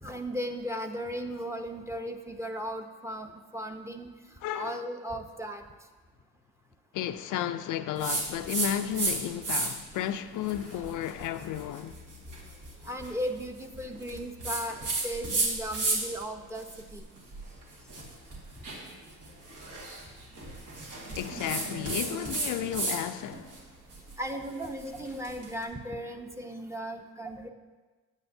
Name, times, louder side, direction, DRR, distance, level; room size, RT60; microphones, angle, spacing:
voice 1, 0.0-4.1 4.5-5.6 12.8-17.0 24.2-27.5, equal, 10° right, 0.7 m, -36 dB
voice 2, 4.4-4.8 6.9-11.9 21.1-23.5, left 11 dB, 75° left, 0.5 m, -33 dB
sound 1, 8.0-9.1 9.4-9.9 10.4-16.2 16.5-23.0 23.3-25.5, right 3 dB, 75° right, 1.8 m, -34 dB
9.3 x 8.9 x 2.7 m
cardioid pair, 85°, 31 cm